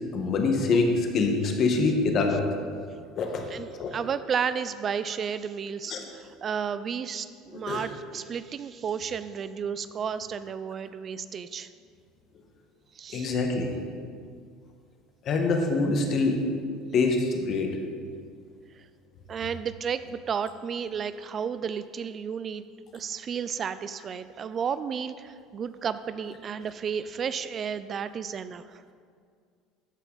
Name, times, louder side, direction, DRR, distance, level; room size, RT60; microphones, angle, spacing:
voice 1, 0.1-2.5 3.2-3.9 5.9-6.0 7.5-7.9 13.1-13.7 15.2-16.4 16.9-17.8, left 3 dB, 50° left, 3 dB, 1.4 m, -25 dB
voice 2, 3.5-11.7 12.9-13.3 18.8-18.9 19.3-22.6 22.9-28.8, right 7 dB, 40° right, 13 dB, 0.4 m, -32 dB
14.5 x 5.5 x 4.0 m, 2.1 s
supercardioid pair, 85°, 0 cm